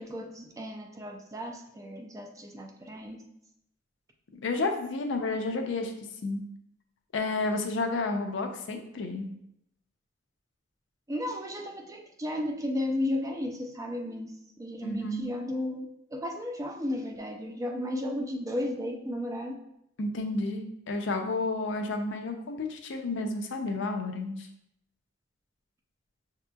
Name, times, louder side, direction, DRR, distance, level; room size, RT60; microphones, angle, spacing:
voice 1, 0.0-3.2 11.1-19.5, left 1 dB, 15° right, 2 dB, 0.3 m, -34 dB
voice 2, 4.4-5.9 6.2-6.4 7.1-9.3 14.8-15.3 20.0-24.5, left 3 dB, 65° left, 4 dB, 0.5 m, -31 dB
5.8 x 2.8 x 2.2 m, 0.77 s
head